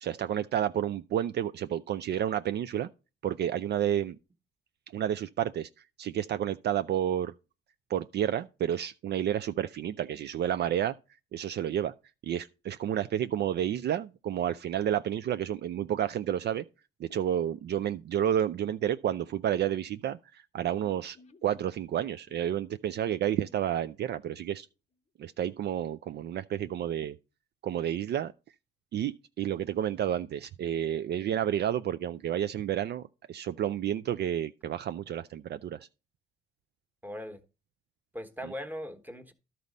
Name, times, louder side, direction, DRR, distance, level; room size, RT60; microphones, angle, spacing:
voice 1, 0.0-2.9 3.2-4.2 4.9-5.7 6.0-7.3 7.9-11.0 11.3-11.9 12.2-16.6 17.0-21.2 21.4-24.7 25.2-27.2 27.6-28.3 28.9-35.9 38.4-38.5, right 10 dB, 55° right, 0.4 m, -30 dB
sound 1, 20.8-24.6 24.9-25.0 25.3-25.4, left 3 dB, 35° left, 0.8 m, -62 dB
voice 2, 37.0-37.4 38.1-39.3, equal, 10° right, 1.2 m, -39 dB
12.0 x 4.1 x 5.3 m
cardioid pair, 90°, 20 cm